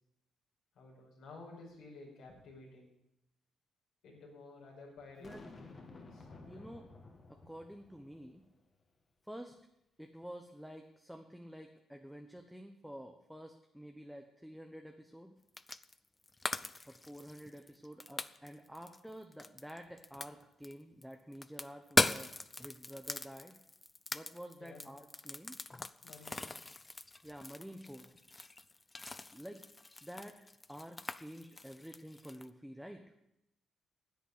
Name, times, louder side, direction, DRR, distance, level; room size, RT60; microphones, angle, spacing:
voice 1, 0.7-2.9 4.0-5.5 5.9-6.7 24.6-24.8 26.0-26.6, left 3 dB, 75° left, -3 dB, 5.6 m, -53 dB
Boom, 5.2-8.5, left 3 dB, 35° left, 2.3 m, -54 dB
voice 2, 5.2-5.5 6.5-6.9 7.3-8.4 9.3-9.6 10.0-15.3 16.9-23.6 24.1-25.6 27.2-28.1 29.3-29.6 30.0-30.4 30.7-33.0, equal, ahead, 4 dB, 1.1 m, -49 dB
sound 1, 15.5-16.0 16.2-20.7 21.0-32.5, left 2 dB, 20° left, 0.5 m, -39 dB
10.5 x 8.2 x 9.9 m, 0.85 s
cardioid pair, 90°, 0 cm